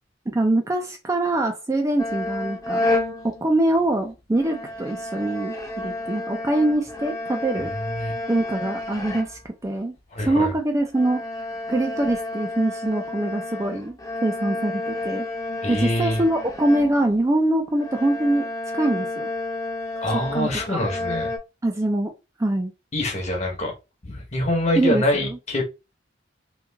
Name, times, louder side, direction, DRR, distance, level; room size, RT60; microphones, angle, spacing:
voice 1, 0.3-2.9 3.2-7.7 8.3-9.9 10.3-11.2 11.7-15.3 15.7-18.5 18.7-19.3 20.3-20.8 21.6-22.1 22.4-22.7 24.8-25.4, right 1 dB, 15° right, 0.4 m, -23 dB
sound 1, 2.0-4.0 4.3-9.7 10.3-10.4 10.9-17.4 17.7-21.4, left 2 dB, 20° left, 0.7 m, -31 dB
voice 2, 7.7-8.2 10.1-10.5 15.6-16.2 20.0-21.3 22.9-23.7 24.0-25.6, left 1 dB, 35° left, 1.0 m, -25 dB
3.1 x 2.4 x 3.4 m
head